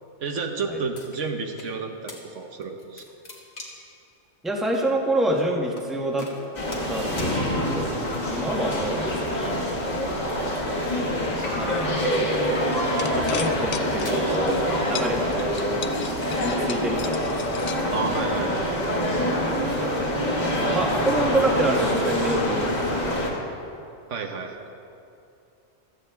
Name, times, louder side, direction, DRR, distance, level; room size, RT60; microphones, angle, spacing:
voice 1, 0.2-3.0 17.9-18.6 24.1-24.6, right 4 dB, 70° right, 4 dB, 1.3 m, -31 dB
sound 1, 0.9-1.7 2.1-2.2 2.6-3.9 4.7-4.9 5.7-5.9 6.2-6.9 7.2-7.3 8.1-8.5 9.5-11.1 11.3-11.9 12.6-12.9 13.6-14.2, left 2 dB, 60° left, 2.1 m, -42 dB
voice 2, 4.4-6.3 6.9-9.6 11.0-12.5 13.1-14.6 14.8-15.9 16.3-17.3 19.4-23.3, right 1 dB, ahead, -1 dB, 1.1 m, -28 dB
sound 2, 6.5-23.3, equal, 35° left, 1.9 m, -25 dB
sound 3, 12.7-14.6 14.9-18.4, left 8 dB, 85° left, 0.3 m, -36 dB
15.5 x 13.5 x 3.5 m, 2.7 s
omnidirectional pair, 1.3 m